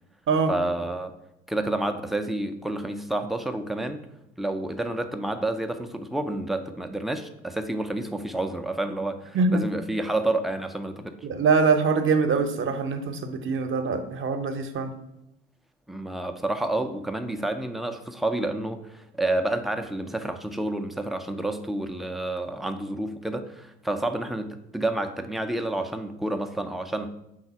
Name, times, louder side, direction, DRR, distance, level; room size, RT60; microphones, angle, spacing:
voice 1, 0.5-1.1 1.5-4.1 4.4-11.2 15.9-27.1, right 1 dB, ahead, 6 dB, 0.4 m, -29 dB
voice 2, 11.2-14.9, right 4 dB, 35° right, 8 dB, 0.8 m, -23 dB
4.8 x 3.9 x 5.7 m, 0.86 s
figure-of-eight pair, 55°, 37 cm